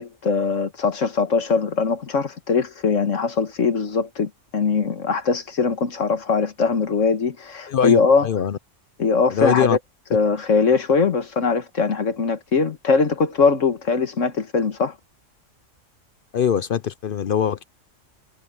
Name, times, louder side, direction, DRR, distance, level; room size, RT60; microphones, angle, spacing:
voice 1, 0.0-8.3 9.0-9.8 10.1-15.0, left 5 dB, 80° left, 1.9 m, -21 dB
voice 2, 7.7-8.6 9.3-9.8 16.3-17.6, left 8 dB, 55° left, 0.7 m, -22 dB
omnidirectional pair, 1.3 m